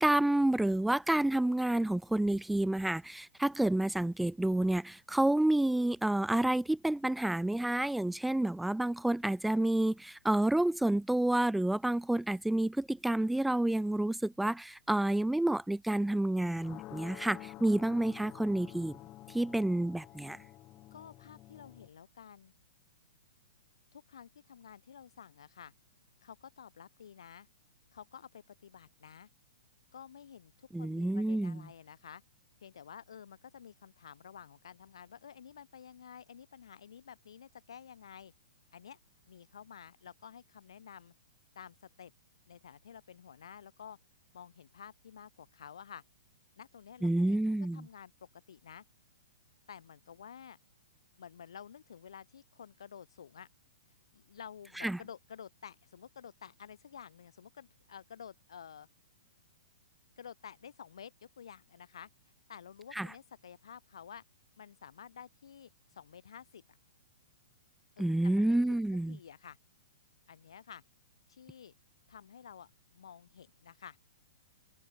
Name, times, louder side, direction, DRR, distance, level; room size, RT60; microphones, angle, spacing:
voice 1, 0.0-19.0 19.3-20.4 30.7-31.6 47.0-47.9 54.8-55.0 62.9-63.1 68.0-69.2, right 1 dB, ahead, 0.5 m, -29 dB
sound 1, 16.4-21.9, left 16 dB, 25° left, 2.1 m, -50 dB
voice 2, 20.9-22.5 23.9-25.7 26.2-27.5 27.9-29.3 29.9-32.2 32.6-38.3 38.7-39.0 39.3-41.1 41.6-42.1 42.5-44.0 44.3-46.0 46.6-47.4 47.7-48.8 49.7-50.6 51.2-53.5 54.1-58.9 60.2-62.1 62.5-64.2 64.6-66.6 68.0-69.6 70.3-70.8 71.3-71.7 72.1-74.0, left 8 dB, 80° left, 4.1 m, -51 dB
hypercardioid pair, 155°, 3 cm